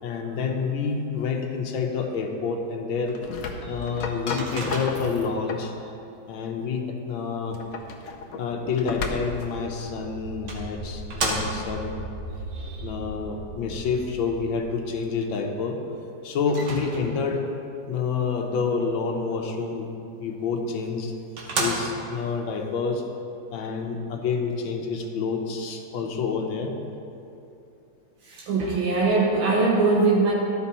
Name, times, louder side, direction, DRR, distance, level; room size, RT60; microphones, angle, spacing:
voice 1, 0.0-3.2 3.6-5.7 6.3-7.6 8.4-11.9 12.8-15.8 16.2-17.4 17.9-19.9 20.2-21.1 21.6-23.0 23.5-26.7, left 5 dB, 85° left, 2 dB, 1.5 m, -28 dB
sound 1, 2.9-5.8 7.4-9.5, left 4 dB, 65° left, 0.9 m, -34 dB
Microwave oven, 4.4-5.3 9.6-9.7 10.5-11.9 16.5-17.4 20.5-20.6 21.0-21.1 21.4-22.2, right 2 dB, 60° right, 1.6 m, -31 dB
sound 2, 9.5-15.4, right 1 dB, 30° right, 2.2 m, -39 dB
voice 2, 12.5-12.9 23.7-23.8 28.3-30.3, right 3 dB, 85° right, -3 dB, 1.7 m, -22 dB
12.5 x 5.2 x 4.2 m, 2.7 s
omnidirectional pair, 2.1 m